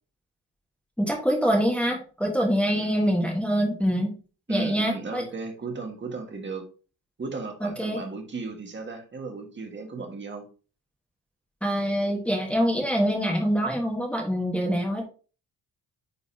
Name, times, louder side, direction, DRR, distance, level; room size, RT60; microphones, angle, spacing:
voice 1, 1.0-4.1 4.5-5.2 7.6-8.0 11.6-15.0, equal, 5° left, 0 dB, 1.4 m, -25 dB
voice 2, 2.7-3.1 4.5-6.6 7.2-10.4, right 4 dB, 30° right, 3 dB, 1.7 m, -35 dB
9.6 x 4.0 x 2.8 m, 0.36 s
cardioid pair, 130°, 41 cm